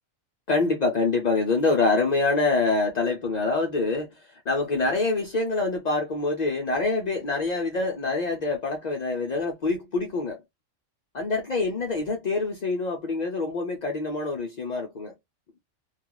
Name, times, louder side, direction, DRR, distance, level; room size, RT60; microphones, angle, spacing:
voice 1, 0.5-10.4 11.1-15.1, left 3 dB, 65° left, 0.4 m, -25 dB
2.4 x 2.3 x 2.9 m
omnidirectional pair, 1.4 m